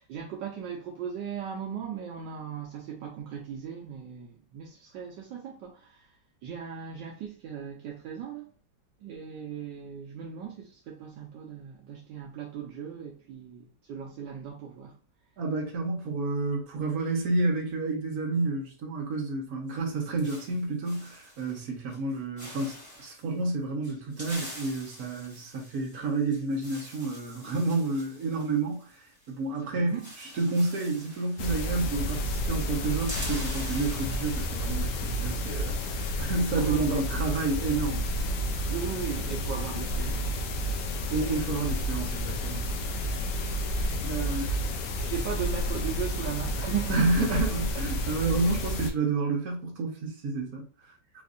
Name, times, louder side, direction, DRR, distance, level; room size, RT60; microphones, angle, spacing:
voice 1, 0.0-6.1 6.4-8.5 9.0-15.0 29.7-30.1 36.6-37.0 38.7-40.5 44.2-44.5 45.0-47.4 48.0-48.2, right 8 dB, 75° right, 1.3 m, -37 dB
voice 2, 15.4-28.9 29.3-30.0 30.3-38.0 41.1-42.7 44.0-44.6 46.9-50.6, right 3 dB, 55° right, 1.4 m, -30 dB
sound 1, 19.7-21.6 21.9-22.1 22.4-23.2 23.8-29.3 29.6-29.7 29.9-32.3 32.5-35.0, equal, 5° left, 1.4 m, -45 dB
sound 2, 31.4-48.9, equal, 70° left, 1.1 m, -31 dB
4.2 x 2.5 x 2.5 m
omnidirectional pair, 2.1 m